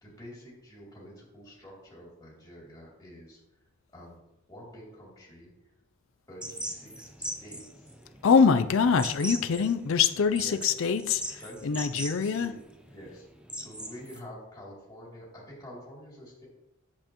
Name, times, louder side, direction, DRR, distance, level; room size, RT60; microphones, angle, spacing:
voice 1, 0.0-3.4 3.9-4.2 4.5-5.5 6.3-8.0 9.4-9.7 10.4-10.6 11.4-12.6 12.9-13.3 13.6-16.5, equal, 15° left, -5 dB, 2.9 m, -47 dB
sound 1, 6.4-14.2, right 1 dB, 5° right, 0.5 m, -40 dB
voice 2, 8.2-12.5, left 6 dB, 65° left, 9 dB, 0.4 m, -24 dB
8.7 x 7.6 x 3.0 m, 0.92 s
head